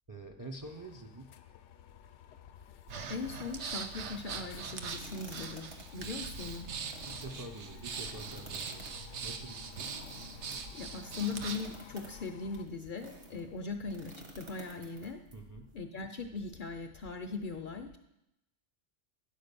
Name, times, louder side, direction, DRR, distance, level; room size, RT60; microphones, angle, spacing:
voice 1, 0.1-1.3 7.0-10.0 15.3-15.7, right 2 dB, 25° right, 3 dB, 0.4 m, -47 dB
sound 1, 0.6-12.7, left 10 dB, 80° left, 0.9 m, -54 dB
Breathing, 2.9-11.7, right 5 dB, 75° right, 1.0 m, -42 dB
voice 2, 3.1-6.7 10.7-15.2 15.7-18.0, left 4 dB, 55° left, 6 dB, 0.6 m, -40 dB
sound 2, 4.9-13.4 13.9-15.3, right 1 dB, 55° right, 1.5 m, -52 dB
10.0 x 4.7 x 6.7 m, 0.85 s
omnidirectional pair, 1.2 m